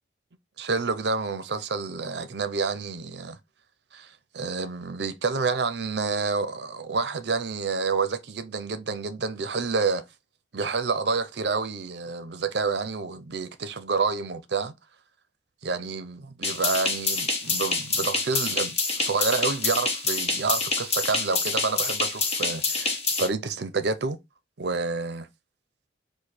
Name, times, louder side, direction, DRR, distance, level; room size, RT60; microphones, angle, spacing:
voice 1, 0.6-3.4 3.9-10.0 10.5-14.7 15.6-24.2 24.6-25.3, right 4 dB, 65° right, 0.6 m, -28 dB
sound 1, 16.4-23.3, left 4 dB, 35° left, 1.0 m, -27 dB
4.9 x 2.1 x 4.3 m
head